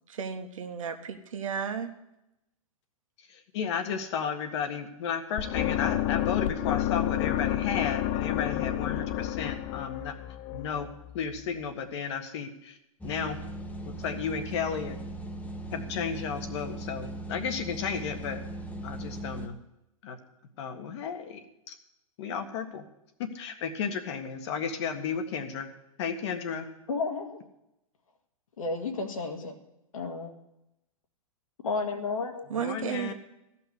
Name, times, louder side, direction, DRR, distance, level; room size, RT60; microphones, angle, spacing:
voice 1, 0.1-1.9 32.5-33.1, right 7 dB, 65° right, 6 dB, 1.5 m, -33 dB
voice 2, 3.3-10.1 10.5-10.9 11.1-12.8 13.0-13.4 13.8-15.0 15.7-18.4 18.8-19.6 20.0-20.2 20.6-21.7 22.2-22.9 23.2-25.7 26.0-26.7 32.5-33.1, left 6 dB, 50° left, 6 dB, 1.7 m, -33 dB
sound 1, 5.4-11.4, left 13 dB, 35° left, 0.5 m, -30 dB
sound 2, 13.0-19.5, right 1 dB, 10° left, 1.2 m, -39 dB
voice 3, 26.9-27.4 28.6-29.5 29.9-30.3 31.6-32.5, left 4 dB, 70° left, 3 dB, 2.1 m, -32 dB
14.5 x 5.9 x 9.7 m, 0.88 s
figure-of-eight pair, 110°, 18 cm